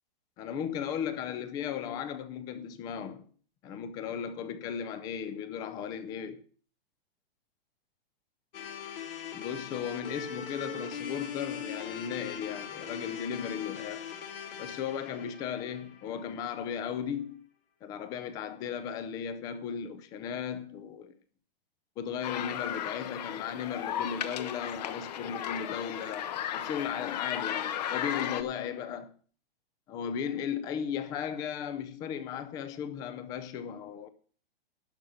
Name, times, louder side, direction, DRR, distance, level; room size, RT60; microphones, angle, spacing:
voice 1, 0.4-3.3 3.6-6.4 9.3-14.1 14.6-17.4 17.8-21.1 22.0-29.1 29.9-34.1, left 8 dB, 15° left, 0.5 m, -36 dB
sound 1, 8.5-16.7, left 7 dB, 70° left, 2.1 m, -41 dB
sound 2, 22.2-28.4, left 10 dB, 45° left, 1.0 m, -35 dB
11.5 x 5.6 x 7.7 m
hypercardioid pair, 160°, 30 cm